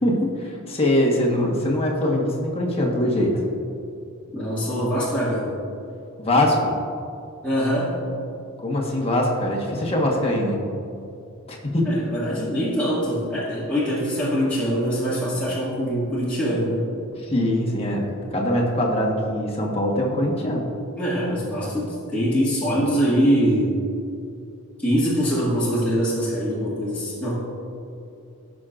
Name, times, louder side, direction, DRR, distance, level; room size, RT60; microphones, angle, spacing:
voice 1, 0.0-3.4 6.2-6.7 8.6-10.6 11.5-12.0 17.2-20.7, left 1 dB, 30° left, -1 dB, 1.3 m, -22 dB
voice 2, 4.3-5.5 7.4-8.0 11.8-16.9 21.0-23.8 24.8-27.3, equal, 5° left, -11 dB, 2.0 m, -23 dB
16.0 x 6.2 x 2.5 m, 2.5 s
head